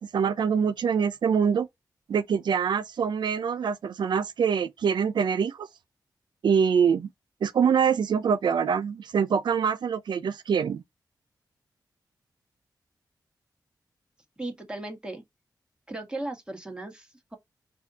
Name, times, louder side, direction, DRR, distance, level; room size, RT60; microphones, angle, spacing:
voice 1, 0.1-1.7 2.1-5.7 6.4-7.1 7.4-10.8, right 7 dB, 80° right, 0.5 m, -24 dB
voice 2, 14.4-15.2 15.9-17.4, right 2 dB, 10° right, 1.7 m, -36 dB
4.1 x 2.8 x 4.0 m
cardioid pair, 55°, 8 cm